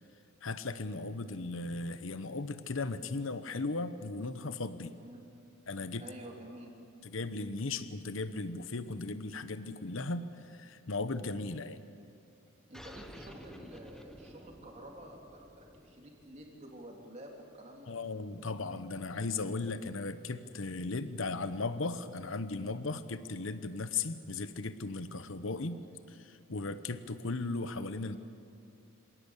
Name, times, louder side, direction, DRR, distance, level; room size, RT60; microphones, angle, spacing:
voice 1, 0.4-4.9 5.7-6.0 7.0-11.8 17.9-25.8 26.1-28.2, left 3 dB, 65° left, 12 dB, 1.0 m, -37 dB
voice 2, 6.0-6.7 7.7-7.8 12.7-18.0, right 1 dB, 30° right, 0 dB, 3.5 m, -50 dB
sound 1, 12.7-17.8, equal, ahead, 1.1 m, -52 dB
26.5 x 17.5 x 8.3 m, 2.7 s
head